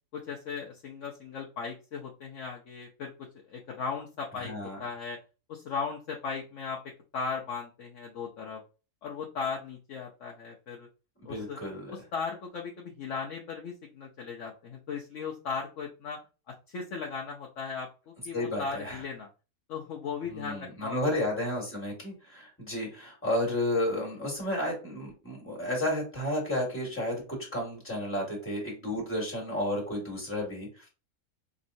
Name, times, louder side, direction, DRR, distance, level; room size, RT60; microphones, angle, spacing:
voice 1, 0.1-4.5 4.8-5.2 5.5-6.8 7.1-8.6 9.0-10.9 11.2-11.6 12.1-16.2 16.7-19.3 19.7-21.0, left 5 dB, 60° left, -1 dB, 1.0 m, -37 dB
voice 2, 4.4-4.8 11.2-11.9 18.3-19.0 20.3-30.9, left 1 dB, 10° left, -3 dB, 1.9 m, -32 dB
5.2 x 2.9 x 2.6 m, 0.32 s
omnidirectional pair, 1.6 m